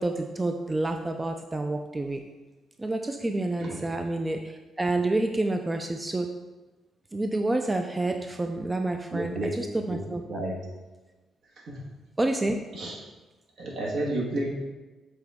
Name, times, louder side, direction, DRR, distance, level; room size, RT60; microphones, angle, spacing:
voice 1, 0.0-2.2 2.8-6.3 7.1-10.4 12.2-12.6, right 2 dB, 20° right, 5 dB, 0.4 m, -28 dB
voice 2, 9.1-9.5 9.8-10.6 11.7-11.8 12.7-13.0 13.6-14.5, right 1 dB, 70° right, -2 dB, 1.5 m, -31 dB
7.0 x 3.8 x 3.5 m, 1.2 s
cardioid pair, 90°, 0 cm